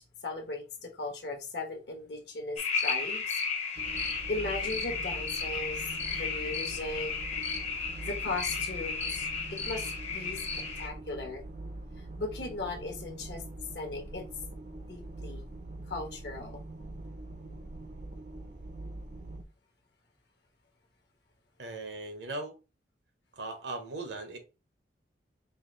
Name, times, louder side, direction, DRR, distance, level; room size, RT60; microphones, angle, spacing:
voice 1, 0.0-3.2 4.3-5.9 6.1-7.1 8.0-10.4 10.8-11.4 12.2-13.4 13.7-14.2 14.6-15.4 15.9-16.6, left 2 dB, 65° left, 1.1 m, -37 dB
sound 1, 2.6-10.9, left 5 dB, 40° left, 0.8 m, -34 dB
sound 2, 3.7-19.4, right 2 dB, 45° right, 0.6 m, -43 dB
voice 2, 21.6-22.5 23.3-24.4, right 2 dB, 75° right, 1.0 m, -38 dB
4.8 x 2.5 x 3.1 m
head